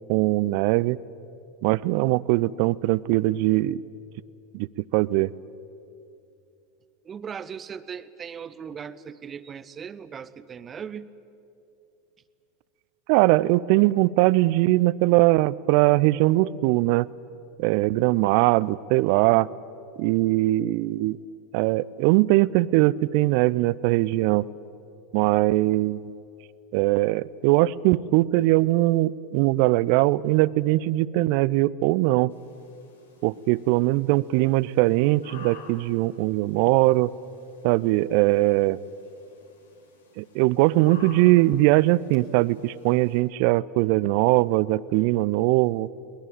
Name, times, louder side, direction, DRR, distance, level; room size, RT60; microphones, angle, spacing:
voice 1, 0.1-1.0 1.6-3.8 4.5-4.7 4.9-5.3 13.1-17.1 17.6-19.5 20.0-21.2 21.5-24.5 25.1-26.0 26.7-32.3 33.2-37.1 37.6-38.8 40.2-45.9, right 18 dB, 55° right, 22 dB, 0.5 m, -21 dB
voice 2, 7.0-11.1, right 7 dB, 25° right, 15 dB, 0.9 m, -38 dB
sound 1, 32.3-43.2, left 3 dB, 75° left, 3.3 m, -52 dB
23.0 x 20.0 x 9.0 m, 2.7 s
figure-of-eight pair, 80°, 0 cm